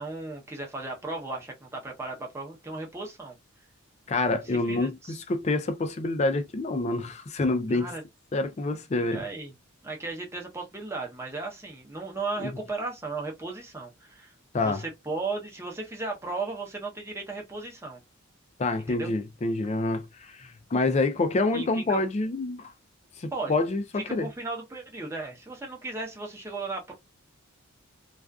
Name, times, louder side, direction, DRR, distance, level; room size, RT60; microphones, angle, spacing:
voice 1, 0.0-3.4 4.5-5.2 7.7-8.0 8.9-9.5 9.8-18.0 18.9-19.1 21.5-22.0 23.3-23.6 24.0-26.9, right 3 dB, 10° right, 0.7 m, -36 dB
voice 2, 4.1-5.0 5.3-7.9 8.3-9.2 12.4-12.5 14.5-14.8 18.6-22.7 23.2-23.8 24.1-24.3, left 2 dB, 30° left, 0.4 m, -27 dB
2.4 x 2.4 x 2.3 m
head